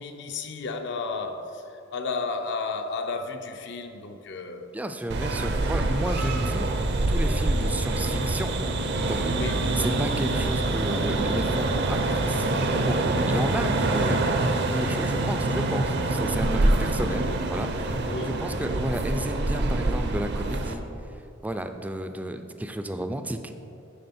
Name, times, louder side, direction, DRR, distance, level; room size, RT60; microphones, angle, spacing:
voice 1, 0.0-4.7 9.3-9.7 18.0-18.5, left 4 dB, 60° left, 0.5 m, -33 dB
voice 2, 4.7-6.7 7.1-8.5 9.1-9.4 9.8-20.8 21.4-23.4, right 1 dB, 10° right, 0.3 m, -32 dB
sound 1, 5.1-20.7, right 2 dB, 60° right, 0.6 m, -25 dB
10.5 x 3.7 x 4.3 m
head